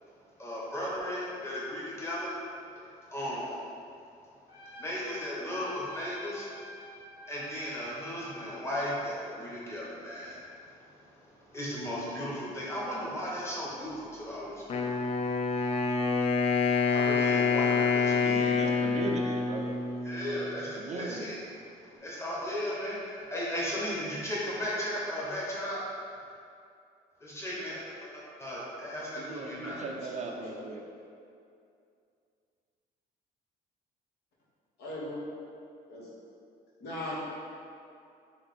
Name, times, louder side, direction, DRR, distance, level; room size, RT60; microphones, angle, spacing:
voice 1, 0.4-2.3 3.1-3.6 4.8-6.5 7.3-10.4 10.7-10.8 11.5-15.0 15.5-15.8 16.9-18.6 20.0-21.4 21.9-25.8 27.2-27.8 28.1-29.8, equal, 15° left, -6 dB, 1.1 m, -36 dB
Trumpet, 4.5-8.7, equal, 90° left, 1.3 m, -48 dB
Wind instrument woodwind instrument, 14.7-20.7, left 5 dB, 35° left, 0.4 m, -27 dB
voice 2, 18.1-19.7 20.7-21.3 29.2-30.8, right 3 dB, 45° right, 1 dB, 0.5 m, -38 dB
voice 3, 29.9-30.8 34.8-35.3 35.9-36.1 36.8-37.2, left 1 dB, 70° left, -7 dB, 1.3 m, -39 dB
3.3 x 2.9 x 4.2 m, 2.5 s
cardioid pair, 110°, 17 cm